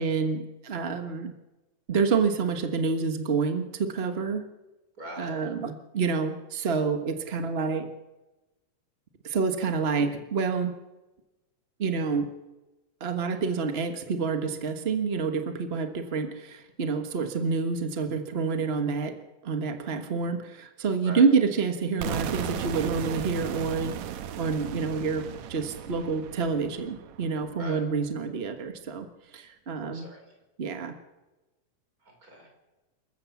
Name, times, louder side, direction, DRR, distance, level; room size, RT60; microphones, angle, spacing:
voice 1, 0.0-1.3 1.9-4.4 5.2-7.9 9.2-10.7 11.8-12.3 13.0-19.2 19.4-24.0 24.4-29.1 29.3-30.1 30.6-30.9, right 5 dB, 50° right, 7 dB, 0.7 m, -28 dB
voice 2, 5.0-5.4 21.0-21.2 27.6-27.8 29.9-30.2 32.0-32.5, equal, 30° right, 2 dB, 5.5 m, -41 dB
sound 1, 22.0-27.9, right 9 dB, 75° right, 2.3 m, -36 dB
27.0 x 15.0 x 7.2 m, 1.1 s
omnidirectional pair, 3.3 m